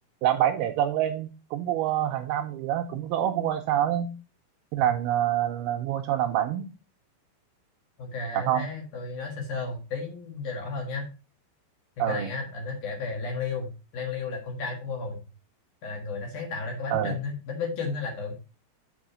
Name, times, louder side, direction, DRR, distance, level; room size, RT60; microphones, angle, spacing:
voice 1, 0.2-4.1 4.7-6.7 8.3-8.7 12.0-12.3 16.9-17.2, right 11 dB, 85° right, 6 dB, 2.3 m, -26 dB
voice 2, 8.0-11.1 12.0-15.2 15.8-18.3, left 4 dB, 55° left, 2 dB, 2.6 m, -33 dB
6.3 x 6.1 x 4.9 m, 0.33 s
omnidirectional pair, 5.0 m